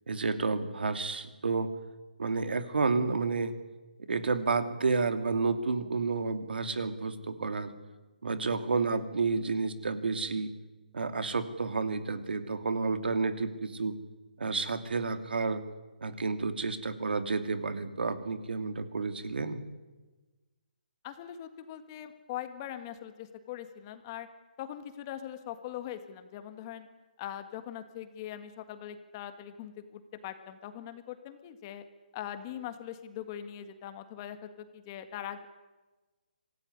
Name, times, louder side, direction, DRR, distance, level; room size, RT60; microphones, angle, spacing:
voice 1, 0.1-1.7 2.2-3.5 4.1-7.7 8.2-10.5 10.9-14.0 14.4-15.6 16.0-19.6, right 4 dB, 80° right, 8 dB, 2.6 m, -30 dB
voice 2, 21.0-24.3 24.6-26.9 27.2-31.8 32.1-35.5, left 11 dB, 25° left, 9 dB, 1.7 m, -41 dB
26.0 x 16.5 x 9.8 m, 1.2 s
hypercardioid pair, 165°, 5 cm